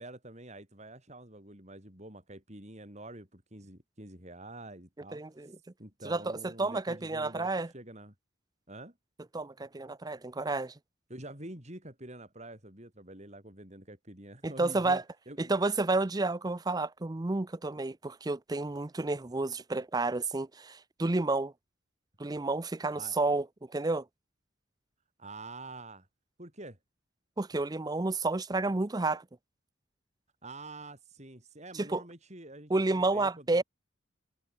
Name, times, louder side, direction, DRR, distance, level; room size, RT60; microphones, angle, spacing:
voice 1, 0.0-5.5 5.8-8.1 8.7-8.9 11.1-15.5 23.0-23.2 25.2-26.1 26.4-26.8 30.4-33.6, right 2 dB, 35° right, 5.7 m, -47 dB
voice 2, 5.1-5.5 6.0-7.7 9.3-10.7 14.4-15.0 15.4-21.5 22.2-23.5 23.7-24.0 27.4-29.2 31.8-32.0 32.7-33.6, right 2 dB, 20° right, 0.6 m, -30 dB
head